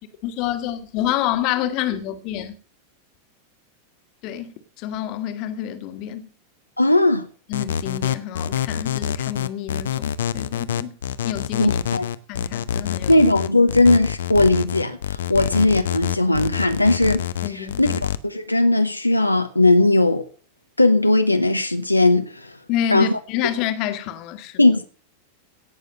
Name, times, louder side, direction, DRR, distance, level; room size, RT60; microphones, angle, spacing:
voice 1, 0.2-2.5 4.2-6.3 7.5-11.0 11.2-11.8 12.3-13.2 15.4-15.5 17.4-18.0 22.7-24.6, left 11 dB, 40° left, 1.6 m, -28 dB
voice 2, 6.8-7.3 11.6-12.1 13.1-20.3 20.8-22.6 22.9-23.2 24.6-24.8, left 2 dB, 85° left, 0.9 m, -18 dB
sound 1, 7.5-18.2, left 9 dB, 65° left, 0.7 m, -26 dB
17.0 x 6.7 x 6.6 m
figure-of-eight pair, 90°, 0 cm